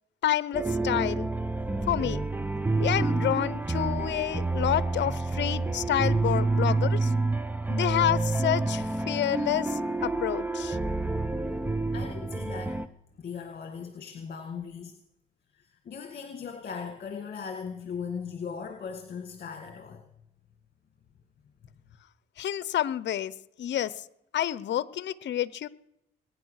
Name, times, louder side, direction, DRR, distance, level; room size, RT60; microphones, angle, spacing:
voice 1, 0.2-1.3 1.9-2.2 2.8-7.1 7.7-10.8 22.4-23.3 23.6-24.0 24.3-25.7, left 11 dB, 65° left, 19 dB, 0.8 m, -29 dB
sound 1, 0.5-12.9, right 3 dB, 10° right, 0.8 m, -28 dB
voice 2, 11.9-12.8 13.2-15.0 15.5-20.0, left 6 dB, 50° left, 5 dB, 2.0 m, -38 dB
21.5 x 9.8 x 6.5 m, 0.81 s
cardioid pair, 90°, 20 cm